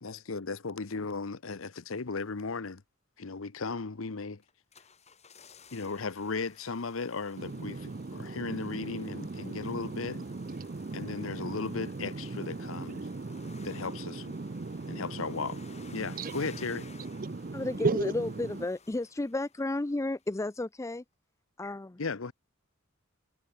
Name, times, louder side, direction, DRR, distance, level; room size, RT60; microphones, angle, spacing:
voice 1, 0.0-2.8 3.2-4.4 5.7-10.2 10.9-13.0 13.6-14.2 14.9-15.6 15.9-16.8 22.0-22.3, left 4 dB, 70° left, 0.9 m, -36 dB
sound 1, 4.4-19.9 20.2-20.3, left 5 dB, 30° left, 7.1 m, -56 dB
voice 2, 7.4-18.6, right 3 dB, 40° right, 0.6 m, -37 dB
voice 3, 17.5-21.0 21.6-22.0, left 2 dB, 15° left, 0.4 m, -33 dB
head